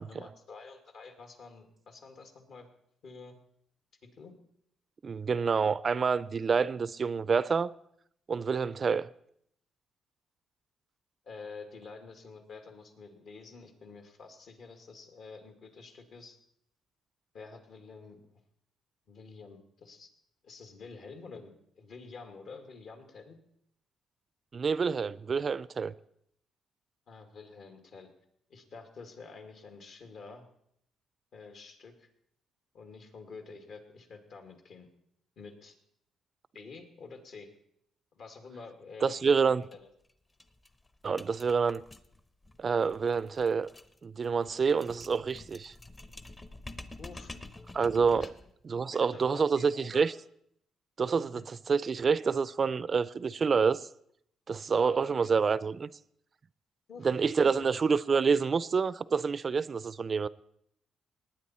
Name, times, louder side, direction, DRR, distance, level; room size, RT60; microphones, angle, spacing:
voice 1, 0.0-2.7 3.0-3.4 4.2-4.3 11.2-16.4 17.3-18.4 19.1-20.1 20.4-23.4 27.1-28.1 28.5-30.4 31.3-32.1 32.7-34.9 35.4-35.8 36.5-37.5 38.1-39.9 47.0-47.3 48.1-48.3 48.9-50.1 51.2-51.4 54.7-55.1 56.9-57.2 57.5-57.7, left 4 dB, 65° left, 2.1 m, -48 dB
voice 2, 5.0-7.7 8.3-9.1 24.5-25.9 39.0-39.6 41.0-41.8 42.6-43.7 44.0-45.7 47.7-48.3 48.6-50.1 51.0-51.4 51.7-53.9 54.5-55.9 57.0-60.3, right 5 dB, 40° right, 0.4 m, -27 dB
sound 1, 39.6-39.7 40.0-40.1 40.4-48.6, left 2 dB, 20° left, 0.8 m, -49 dB
19.0 x 9.5 x 4.3 m
cardioid pair, 90°, 0 cm